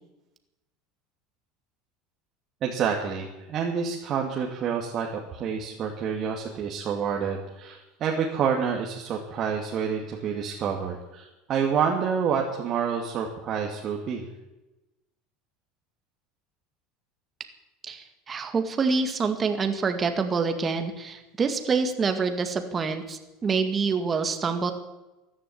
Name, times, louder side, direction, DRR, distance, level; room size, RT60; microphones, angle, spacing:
voice 1, 2.6-14.3, right 7 dB, 45° right, 0 dB, 2.3 m, -28 dB
voice 2, 17.9-24.7, right 5 dB, 25° right, 7 dB, 2.1 m, -26 dB
14.5 x 11.0 x 8.7 m, 1.0 s
supercardioid pair, 110°, 0 cm